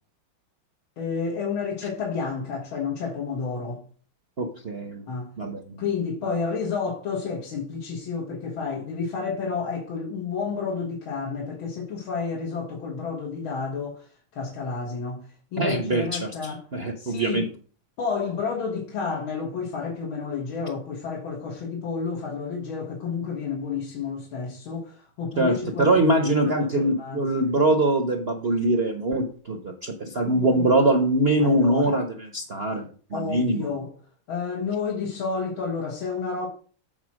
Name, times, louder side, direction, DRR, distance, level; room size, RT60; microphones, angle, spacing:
voice 1, 1.0-3.8 5.1-5.3 5.8-15.2 15.5-16.6 17.0-17.4 18.0-27.3 30.2-30.7 31.4-32.0 33.1-33.9 34.3-36.5, left 5 dB, 80° left, 2.3 m, -30 dB
voice 2, 4.4-5.0 5.4-5.8 6.2-6.3 15.6-17.5 25.4-33.7, right 1 dB, 45° right, 0.8 m, -23 dB
8.0 x 4.3 x 6.3 m
omnidirectional pair, 2.2 m